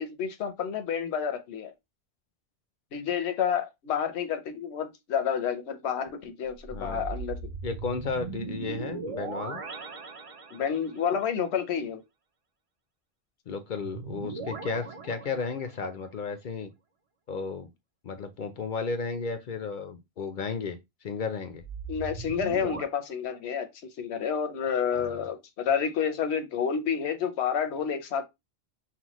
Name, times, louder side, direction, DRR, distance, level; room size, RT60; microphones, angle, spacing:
voice 1, 0.0-1.7 2.9-7.5 10.5-12.0 21.9-28.2, left 7 dB, 80° left, 1.0 m, -29 dB
sound 1, 6.4-11.0 13.8-15.9 21.5-22.8, right 4 dB, 40° right, 0.5 m, -39 dB
voice 2, 6.7-7.0 7.6-9.6 13.5-16.7 17.3-17.7 18.0-21.6 24.9-25.1, left 4 dB, 55° left, 0.7 m, -34 dB
5.7 x 2.2 x 3.0 m
omnidirectional pair, 1.1 m